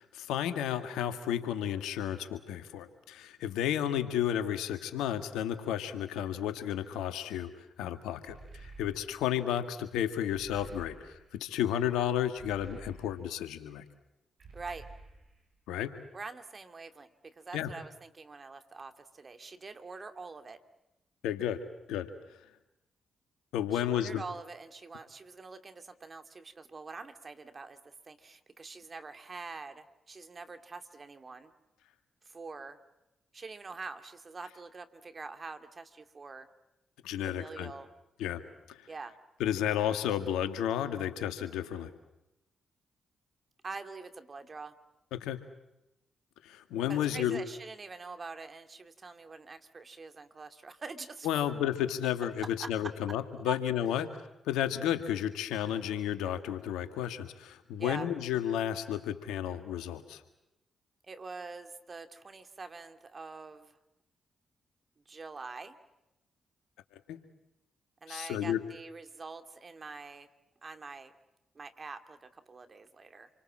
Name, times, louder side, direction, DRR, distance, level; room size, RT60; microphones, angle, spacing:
voice 1, 0.0-7.5 7.8-13.8 15.7-15.9 17.5-17.7 21.2-21.6 21.9-22.1 23.5-24.2 37.0-37.7 38.2-38.4 38.7-38.9 39.4-41.9 45.1-45.4 46.4-47.4 51.2-54.1 54.5-60.2 67.1-67.2 68.1-68.6, left 10 dB, 85° left, 9 dB, 1.9 m, -32 dB
sound 1, 8.2-9.3 10.3-11.4 12.3-13.4 14.4-15.5, right 3 dB, 65° right, 7.3 m, -51 dB
voice 2, 14.5-14.9 16.1-20.6 23.7-31.5 32.2-32.8 33.3-36.5 37.2-37.9 38.9-39.1 43.6-44.7 46.9-51.3 52.6-52.9 53.4-53.6 57.8-58.1 61.1-63.8 65.1-65.8 68.0-70.3 70.6-71.1 71.5-73.3, right 4 dB, 45° right, 8 dB, 2.6 m, -45 dB
28.0 x 24.5 x 7.6 m, 0.93 s
hypercardioid pair, 45°, 0 cm